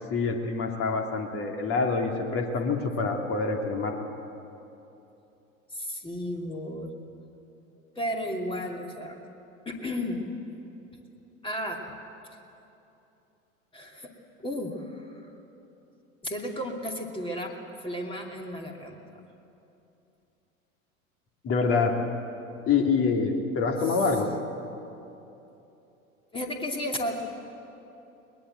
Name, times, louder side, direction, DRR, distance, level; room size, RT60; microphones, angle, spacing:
voice 1, 0.1-4.0 21.4-21.9 22.7-24.3, left 4 dB, 30° left, 2 dB, 2.8 m, -26 dB
voice 2, 5.7-6.9 8.0-9.2 9.7-10.2 11.4-11.8 13.7-14.1 14.4-15.2 16.2-17.5 17.8-19.0 23.9-24.0 26.3-27.2, equal, 15° left, 1 dB, 2.6 m, -33 dB
22.0 x 20.5 x 7.8 m, 2.9 s
figure-of-eight pair, 85°, 41 cm